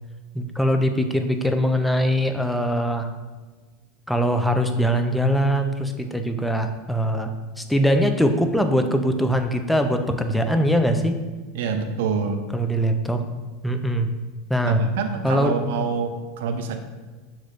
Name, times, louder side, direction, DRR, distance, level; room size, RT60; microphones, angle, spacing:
voice 1, 0.3-3.1 4.1-7.3 7.6-11.2 12.5-13.2 13.6-14.1 14.5-14.8 15.2-15.6, equal, 5° left, 6 dB, 0.4 m, -22 dB
voice 2, 11.5-12.4 14.6-16.8, right 5 dB, 75° right, 6 dB, 0.4 m, -26 dB
6.2 x 3.1 x 2.5 m, 1.3 s
hypercardioid pair, 105°, 0 cm